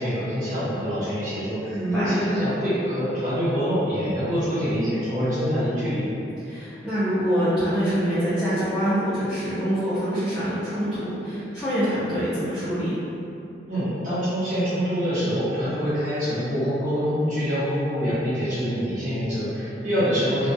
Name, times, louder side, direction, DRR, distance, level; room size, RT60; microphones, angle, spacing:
voice 1, 0.0-6.0 13.7-20.5, equal, 45° right, -14 dB, 0.9 m, -25 dB
voice 2, 1.7-2.2 6.4-13.0, equal, ahead, -16 dB, 0.5 m, -25 dB
2.3 x 2.2 x 2.6 m, 2.7 s
head